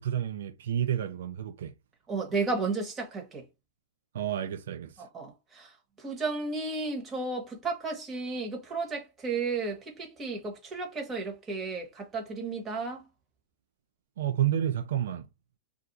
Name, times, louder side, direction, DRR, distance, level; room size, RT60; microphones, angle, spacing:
voice 1, 0.0-1.7 4.1-5.1 14.2-15.3, right 10 dB, 80° right, 0.3 m, -30 dB
voice 2, 2.1-3.5 5.0-13.1, right 3 dB, 20° right, 1.1 m, -33 dB
2.4 x 2.3 x 4.0 m
hypercardioid pair, 130°, 0 cm